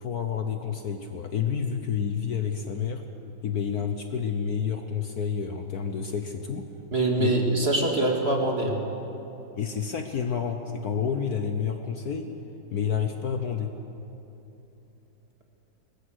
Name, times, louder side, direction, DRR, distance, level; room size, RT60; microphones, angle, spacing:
voice 1, 0.0-3.0 3.4-6.7 7.2-7.3 9.6-12.3 12.7-13.7, left 7 dB, 60° left, 6 dB, 1.3 m, -29 dB
voice 2, 6.9-8.8, right 2 dB, 30° right, 1 dB, 2.4 m, -24 dB
22.0 x 20.0 x 6.5 m, 3.0 s
omnidirectional pair, 2.1 m